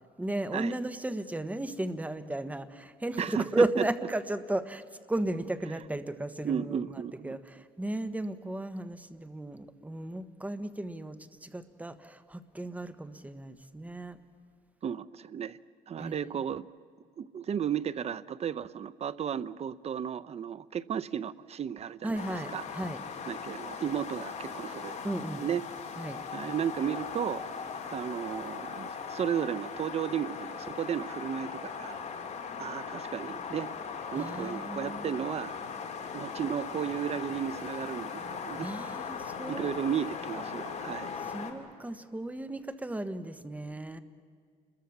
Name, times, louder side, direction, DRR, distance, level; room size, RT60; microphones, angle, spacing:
voice 1, 0.2-14.2 16.0-16.1 22.0-23.0 25.0-25.4 26.0-26.2 34.1-35.2 38.6-39.7 41.3-44.0, right 1 dB, 10° right, 11 dB, 1.3 m, -34 dB
voice 2, 3.2-3.5 6.4-7.4 14.8-15.6 15.9-16.7 17.2-22.2 22.5-22.6 23.3-25.0 25.3-25.6 26.3-27.5 27.8-32.0 32.6-33.7 34.1-35.6 36.1-38.7 39.5-41.1, right 8 dB, 40° right, 15 dB, 0.7 m, -34 dB
sound 1, 22.2-41.5, left 6 dB, 40° left, 3.0 m, -39 dB
29.0 x 22.0 x 7.3 m, 2.1 s
cardioid pair, 110°, 17 cm